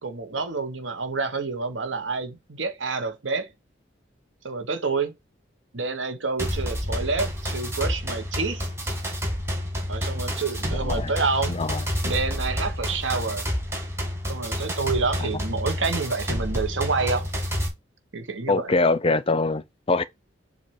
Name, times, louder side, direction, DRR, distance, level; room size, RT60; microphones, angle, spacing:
voice 1, 0.0-3.5 4.4-5.1 5.7-8.7 9.9-11.6 12.0-13.5 14.3-17.3 18.1-18.7, right 4 dB, 85° right, 1.3 m, -28 dB
sound 1, 6.4-17.7, equal, 15° right, 2.4 m, -29 dB
voice 2, 11.5-11.8 15.2-15.3 18.5-20.0, left 3 dB, 30° left, 0.5 m, -23 dB
7.3 x 2.8 x 4.7 m
head